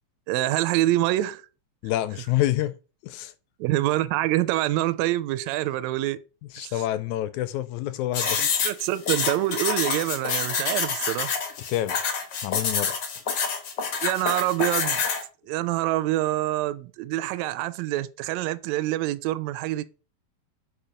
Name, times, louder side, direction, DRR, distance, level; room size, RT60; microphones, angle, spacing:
voice 1, 0.3-1.4 3.6-6.2 6.6-6.8 8.4-11.3 14.0-15.0 15.5-19.8, right 15 dB, 80° right, 1.7 m, -26 dB
voice 2, 1.8-2.8 3.0-3.3 6.5-8.7 11.7-12.0 12.4-13.0, left 14 dB, 80° left, 1.9 m, -27 dB
sound 1, 8.1-15.2, left 5 dB, 55° left, 1.3 m, -27 dB
5.4 x 4.4 x 5.0 m
omnidirectional pair, 3.5 m